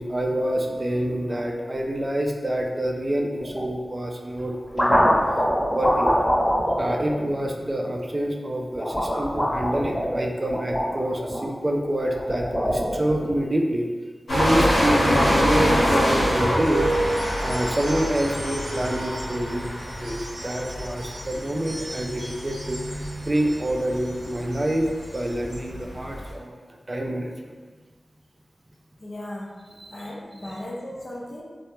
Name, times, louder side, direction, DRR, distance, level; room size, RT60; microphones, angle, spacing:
voice 1, 0.0-5.4 5.7-6.2 6.8-13.9 14.3-16.9 17.4-19.7 20.0-23.0 23.2-24.9 25.1-27.5 29.8-29.9, right 1 dB, 30° right, 1 dB, 0.3 m, -27 dB
sound 1, 3.4-3.7 4.3-7.9 8.7-11.4 12.0-13.3, equal, 20° left, 0.8 m, -24 dB
sound 2, 14.3-26.3, equal, 90° left, 0.9 m, -25 dB
sound 3, 16.3-25.7, right 1 dB, 90° right, 0.5 m, -42 dB
voice 2, 29.0-29.6 29.9-31.4, left 1 dB, 50° left, -5 dB, 0.5 m, -36 dB
2.1 x 2.0 x 2.9 m, 1.4 s
wide cardioid pair, 70°, 0 cm